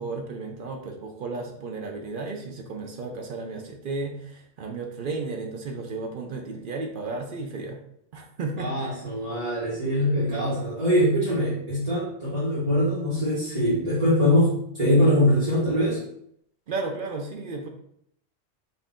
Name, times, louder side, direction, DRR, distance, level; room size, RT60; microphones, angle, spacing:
voice 1, 0.0-7.8 8.1-9.1 10.2-10.6 16.7-17.7, right 3 dB, 60° right, 3 dB, 0.7 m, -34 dB
voice 2, 8.6-16.0, equal, 35° right, -10 dB, 1.3 m, -23 dB
4.2 x 2.5 x 3.6 m, 0.71 s
omnidirectional pair, 1.1 m